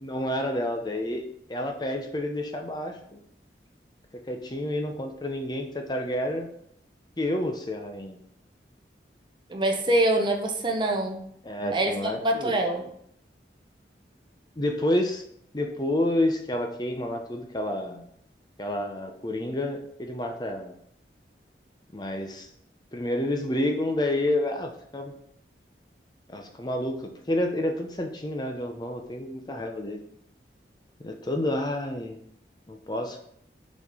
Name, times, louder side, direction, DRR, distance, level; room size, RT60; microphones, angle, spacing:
voice 1, 0.0-1.2 1.5-3.2 4.3-6.5 7.2-8.2 11.4-12.5 14.6-15.2 15.5-18.0 18.6-20.7 21.9-22.5 22.9-25.1 26.3-30.0 31.0-32.2 32.7-33.2, left 1 dB, 25° left, 4 dB, 0.7 m, -29 dB
voice 2, 9.5-11.2 11.7-12.9, right 1 dB, 25° right, 3 dB, 0.8 m, -25 dB
6.8 x 4.2 x 4.9 m, 0.69 s
head